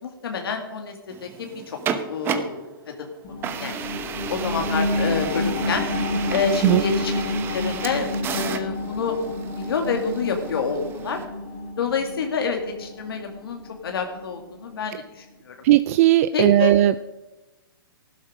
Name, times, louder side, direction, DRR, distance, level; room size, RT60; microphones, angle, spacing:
voice 1, 0.0-1.8 2.1-3.9 4.3-5.8 6.3-9.1 9.6-11.2 11.8-15.5 16.3-16.7, left 5 dB, 80° left, 3 dB, 2.1 m, -28 dB
sound 1, 1.1-2.7 3.4-11.3, right 7 dB, 20° right, 0.9 m, -33 dB
sound 2, 3.2-14.3 14.8-14.9, left 2 dB, 35° left, 3.4 m, -29 dB
voice 2, 15.6-17.0, right 14 dB, 40° right, 14 dB, 0.4 m, -17 dB
15.0 x 12.0 x 5.0 m, 1.0 s
hypercardioid pair, 150°, 12 cm